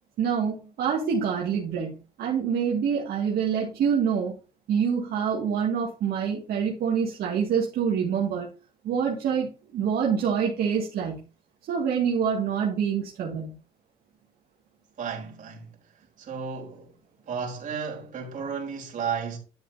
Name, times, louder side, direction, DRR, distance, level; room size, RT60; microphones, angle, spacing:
voice 1, 0.2-4.3 4.7-8.5 8.8-11.2 11.7-13.5, right 7 dB, 65° right, 2.2 m, -26 dB
voice 2, 15.0-15.7 16.2-16.9 17.3-19.4, right 6 dB, 50° right, 3.9 m, -33 dB
11.0 x 7.4 x 2.8 m
cardioid pair, 110°, 17 cm